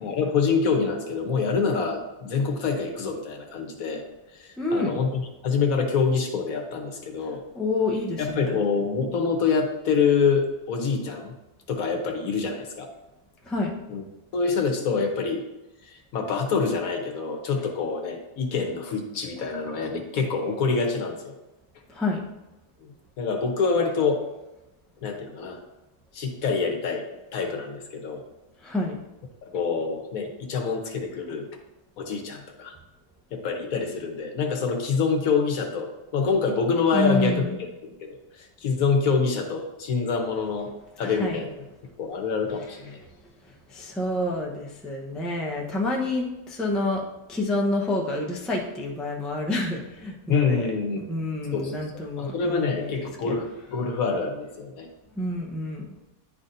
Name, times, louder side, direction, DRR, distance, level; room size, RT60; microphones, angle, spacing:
voice 1, 0.0-4.0 4.3-7.4 8.2-11.3 11.7-12.9 13.9-14.0 14.3-15.4 15.8-21.3 22.8-24.2 25.0-25.6 26.1-27.0 27.3-28.2 29.4-31.5 32.0-32.7 33.3-37.4 37.8-40.7 41.0-41.5 42.0-43.0 50.3-51.0 51.5-51.8 52.2-54.9, left 5 dB, 70° left, 3 dB, 1.3 m, -26 dB
voice 2, 4.6-5.0 7.5-8.6 13.5-13.8 21.9-22.2 28.6-29.0 36.9-37.6 41.0-41.4 43.7-47.0 47.3-50.7 51.1-53.3 55.2-55.8, left 2 dB, ahead, -1 dB, 0.5 m, -28 dB
10.5 x 4.1 x 2.6 m, 1.0 s
omnidirectional pair, 1.6 m